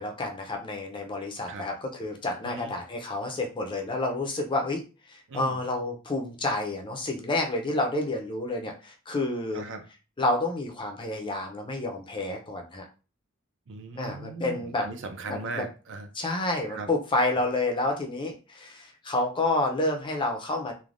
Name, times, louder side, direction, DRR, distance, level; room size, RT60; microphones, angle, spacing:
voice 1, 0.0-4.8 5.1-9.6 10.2-12.8 13.9-14.9 15.3-15.7 16.1-20.7, left 2 dB, 25° left, 2 dB, 0.5 m, -29 dB
voice 2, 2.4-2.7 5.3-5.6 9.5-9.8 13.7-16.1 16.7-16.9, right 3 dB, 60° right, 6 dB, 0.5 m, -38 dB
3.2 x 2.1 x 2.5 m, 0.33 s
head